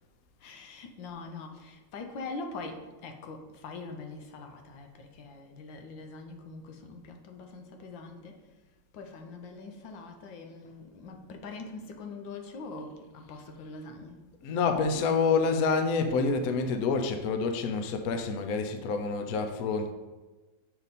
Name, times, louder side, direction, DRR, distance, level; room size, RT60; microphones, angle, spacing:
voice 1, 0.4-4.9 5.2-8.3 8.9-14.2, left 3 dB, 80° left, 4 dB, 1.6 m, -43 dB
voice 2, 14.4-19.9, left 4 dB, 65° left, 6 dB, 1.0 m, -27 dB
7.3 x 5.2 x 4.1 m, 1.2 s
omnidirectional pair, 2.0 m